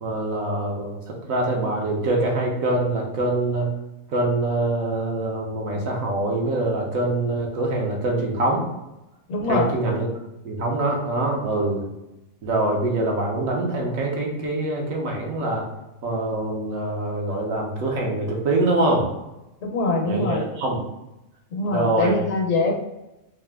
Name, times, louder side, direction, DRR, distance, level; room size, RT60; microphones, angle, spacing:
voice 1, 0.0-3.7 4.1-8.6 9.5-10.1 10.4-11.8 12.4-15.6 16.0-19.1 20.0-20.8 21.7-22.2, right 2 dB, 75° right, -1 dB, 1.3 m, -24 dB
voice 2, 9.3-9.7 19.6-20.5 21.5-22.7, left 3 dB, 70° left, 2 dB, 1.1 m, -23 dB
3.7 x 2.8 x 3.4 m, 0.94 s
omnidirectional pair, 1.4 m